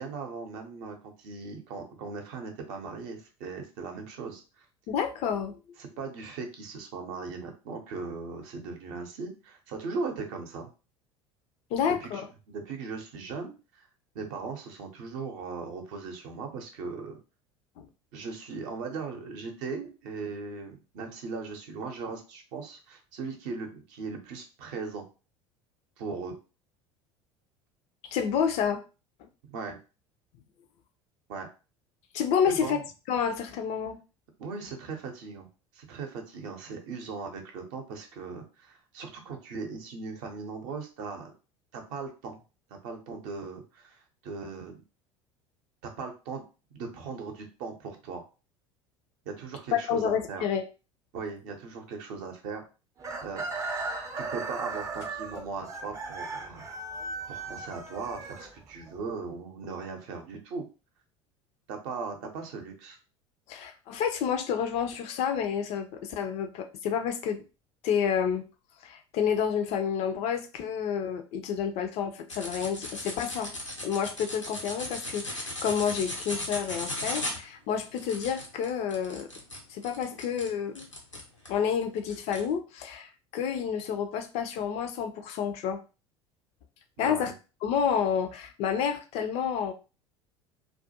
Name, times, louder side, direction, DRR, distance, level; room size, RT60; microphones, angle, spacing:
voice 1, 0.0-4.6 5.8-10.7 11.8-13.9 14.1-17.2 18.1-25.0 26.0-26.4 29.5-29.8 31.3-31.5 32.5-32.8 34.4-35.5 35.7-41.3 41.7-42.4 42.7-44.8 45.8-46.4 46.7-48.2 49.3-50.4 51.1-52.6 53.2-53.5 54.2-56.6 57.3-60.6 61.7-63.0 87.0-87.3, right 4 dB, 55° right, 3 dB, 0.7 m, -38 dB
voice 2, 4.9-5.6 11.7-12.2 17.8-17.9 28.1-28.8 32.1-32.8 33.1-34.0 49.7-50.6 63.5-67.4 67.8-68.4 68.8-73.5 73.8-79.3 79.7-80.9 81.5-85.8 87.0-87.3 87.6-89.7, left 7 dB, 45° left, 7 dB, 0.4 m, -29 dB
Chicken rooster, 53.0-59.0, right 3 dB, 20° right, 0.5 m, -37 dB
sound 1, 72.3-81.6 82.1-82.4, left 1 dB, 90° left, 0.7 m, -37 dB
2.3 x 2.2 x 2.8 m, 0.32 s
figure-of-eight pair, 70°, 15 cm